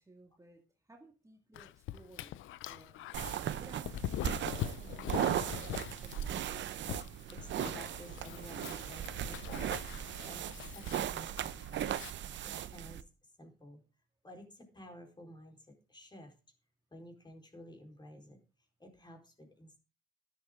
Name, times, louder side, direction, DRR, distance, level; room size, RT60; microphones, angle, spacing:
voice 1, 0.0-2.4 2.6-3.0 3.5-6.5, right 2 dB, 15° right, 2 dB, 2.1 m, -57 dB
Dog, 1.5-12.1, left 13 dB, 80° left, 0.6 m, -43 dB
sound 1, 3.1-13.0, right 11 dB, 70° right, 0.8 m, -37 dB
voice 2, 7.3-13.8 14.2-16.3 16.9-18.4 18.8-19.8, left 1 dB, 20° left, 3 dB, 4.4 m, -53 dB
12.0 x 11.5 x 3.7 m, 0.33 s
cardioid pair, 90°, 20 cm